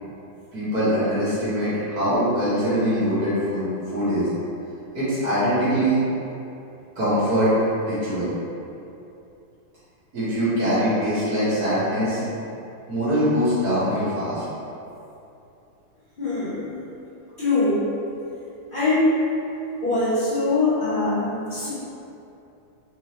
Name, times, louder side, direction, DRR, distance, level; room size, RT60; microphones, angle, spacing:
voice 1, 0.5-4.3 4.9-6.0 7.0-7.5 7.8-8.3 10.1-12.2 12.9-14.4, equal, 50° right, -13 dB, 1.9 m, -23 dB
voice 2, 16.2-16.9 17.4-17.9 18.7-19.1 19.8-21.7, left 2 dB, 85° left, -11 dB, 0.4 m, -22 dB
4.5 x 2.7 x 3.1 m, 2.8 s
omnidirectional pair, 2.1 m